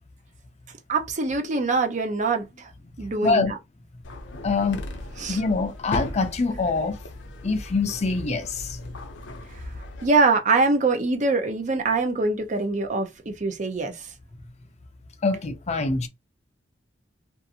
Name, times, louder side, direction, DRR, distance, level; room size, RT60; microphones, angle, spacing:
voice 1, 0.9-2.7 3.0-3.6 5.2-5.4 9.5-9.6 10.0-14.1, right 3 dB, 45° right, 0.5 m, -24 dB
sound 1, 4.0-10.1, left 1 dB, 90° left, 0.6 m, -37 dB
voice 2, 4.4-4.8 5.3-7.0 7.4-8.8 15.2-16.1, left 3 dB, 40° left, 0.4 m, -24 dB
2.5 x 2.4 x 2.7 m
head